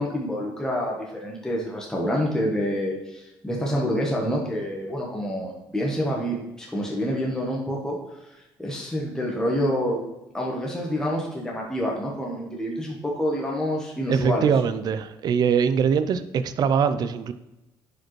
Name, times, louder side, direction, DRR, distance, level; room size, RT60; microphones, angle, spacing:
voice 1, 0.0-10.0 10.3-14.5, equal, 5° left, -3 dB, 1.1 m, -27 dB
voice 2, 14.1-17.3, right 7 dB, 45° right, 12 dB, 0.5 m, -22 dB
10.5 x 4.9 x 3.2 m, 0.95 s
cardioid pair, 140°, 9 cm